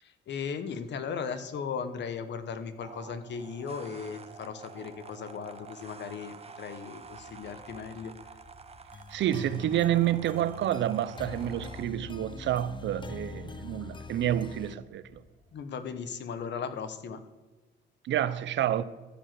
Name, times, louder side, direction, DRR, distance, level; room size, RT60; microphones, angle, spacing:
voice 1, 0.0-8.1 15.5-17.2, left 6 dB, 65° left, 1.1 m, -37 dB
sound 1, 2.8-11.8, right 5 dB, 30° right, 1.0 m, -49 dB
sound 2, 7.0-15.6, right 1 dB, 45° left, 3.3 m, -59 dB
sound 3, 8.9-14.8, left 4 dB, 25° left, 0.5 m, -44 dB
voice 2, 9.1-15.2 18.0-18.8, right 11 dB, 70° right, 0.6 m, -29 dB
13.5 x 5.1 x 7.7 m
cardioid pair, 90°, 20 cm